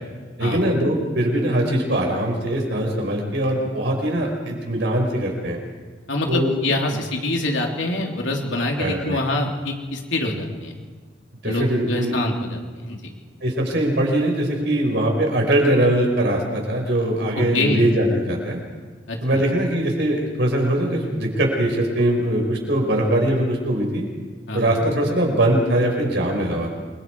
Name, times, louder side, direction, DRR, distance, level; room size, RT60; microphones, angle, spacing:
voice 1, 0.4-5.6 6.3-6.5 6.9-7.0 8.8-9.2 11.4-12.1 13.4-18.6 19.2-24.1 24.5-26.7, right 1 dB, 65° right, 1 dB, 5.2 m, -21 dB
voice 2, 6.1-10.7 11.4-13.1 17.3-17.8 19.1-19.4 24.5-24.8, left 2 dB, 85° left, 1 dB, 3.1 m, -25 dB
28.0 x 22.5 x 4.7 m, 1.5 s
head